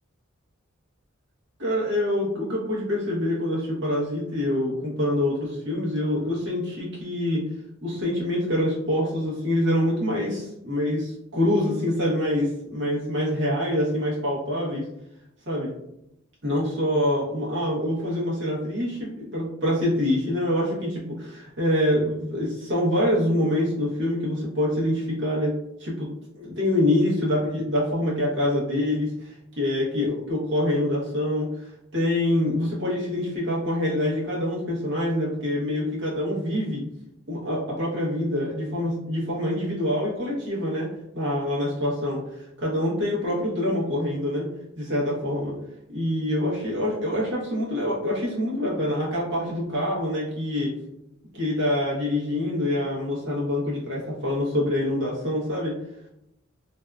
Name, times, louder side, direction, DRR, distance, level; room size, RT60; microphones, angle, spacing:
voice 1, 1.6-7.5 7.8-14.9 15.5-15.7 16.4-25.5 25.8-26.1 26.4-36.8 37.3-44.5 44.8-45.5 45.9-50.7 51.3-55.7, left 1 dB, 60° right, -5 dB, 1.0 m, -25 dB
2.6 x 2.2 x 2.3 m, 0.83 s
head